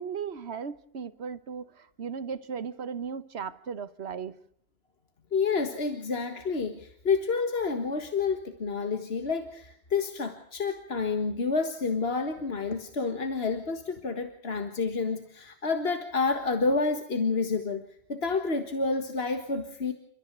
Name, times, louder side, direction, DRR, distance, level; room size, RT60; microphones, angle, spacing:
voice 1, 0.0-4.4, right 6 dB, 85° right, 14 dB, 1.4 m, -36 dB
voice 2, 5.3-17.8 18.1-19.9, left 4 dB, 75° left, 7 dB, 1.9 m, -29 dB
29.0 x 14.0 x 8.1 m, 0.68 s
omnidirectional pair, 1.1 m